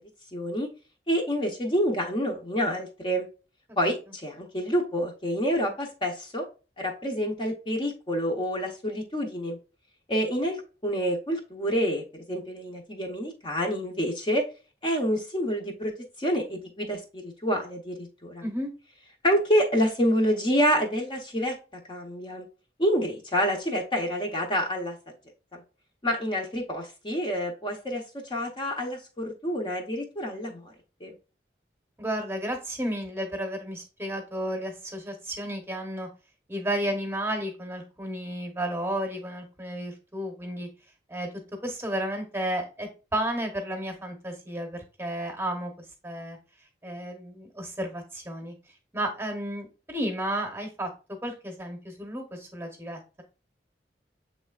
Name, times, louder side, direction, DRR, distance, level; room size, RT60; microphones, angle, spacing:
voice 1, 0.3-0.7 1.1-3.3 3.8-6.5 6.8-9.6 10.1-14.4 14.8-15.9 16.2-18.4 19.2-21.6 21.9-22.5 22.8-25.0 25.5-25.6 26.0-30.6 31.0-31.1, equal, 30° left, 1 dB, 0.7 m, -27 dB
voice 2, 32.0-36.1 36.5-40.7 41.1-41.3 41.6-46.4 46.8-48.5 48.9-53.2, right 1 dB, 15° right, 3 dB, 0.9 m, -32 dB
7.1 x 3.2 x 2.3 m, 0.33 s
head